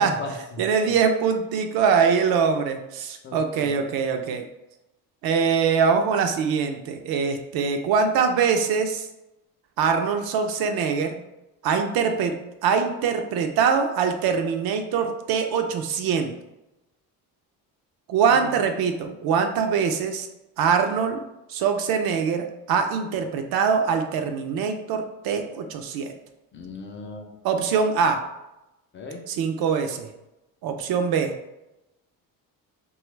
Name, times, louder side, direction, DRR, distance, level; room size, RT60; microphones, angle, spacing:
voice 1, 0.0-0.6 3.2-3.7 18.4-18.5 26.5-27.3 28.9-29.2, left 2 dB, 30° left, 3 dB, 0.4 m, -36 dB
voice 2, 0.6-4.5 5.2-9.1 9.8-11.2 11.6-12.4 12.6-16.3 18.1-20.3 20.6-21.2 21.5-26.1 27.4-28.2 29.3-30.1 30.6-31.3, right 6 dB, 65° right, 5 dB, 0.5 m, -23 dB
2.9 x 2.3 x 3.1 m, 0.94 s
cardioid pair, 115°, 39 cm